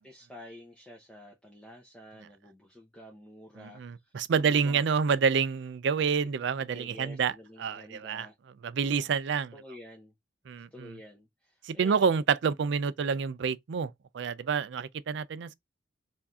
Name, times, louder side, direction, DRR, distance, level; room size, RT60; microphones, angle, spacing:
voice 1, 0.0-4.8 6.7-8.3 8.9-9.1 9.5-10.1 10.7-12.2, left 1 dB, 5° left, 0.8 m, -49 dB
voice 2, 3.6-8.3 8.6-9.5 10.5-10.9 11.6-15.5, right 6 dB, 65° right, 0.4 m, -28 dB
4.7 x 2.7 x 3.5 m
head